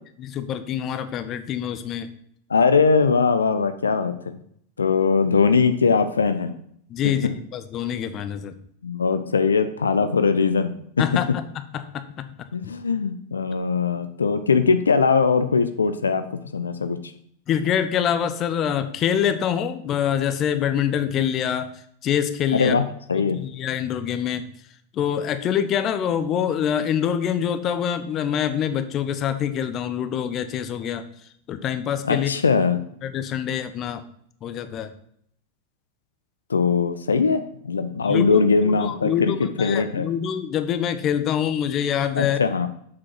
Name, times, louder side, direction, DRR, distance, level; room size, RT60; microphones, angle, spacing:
voice 1, 0.2-2.1 6.9-8.5 11.0-11.4 11.7-12.2 17.5-21.7 22.0-22.7 23.3-24.5 24.9-31.0 31.5-32.3 33.0-34.0 34.4-34.9 38.0-42.4, left 9 dB, 30° left, 11 dB, 0.8 m, -25 dB
voice 2, 2.5-4.4 4.8-6.5 8.8-10.8 12.5-17.0 22.5-22.8 23.1-23.4 32.1-32.8 36.5-40.1 42.2-42.7, left 5 dB, 75° left, 9 dB, 0.6 m, -21 dB
7.5 x 6.2 x 5.9 m, 0.67 s
figure-of-eight pair, 90°, 0 cm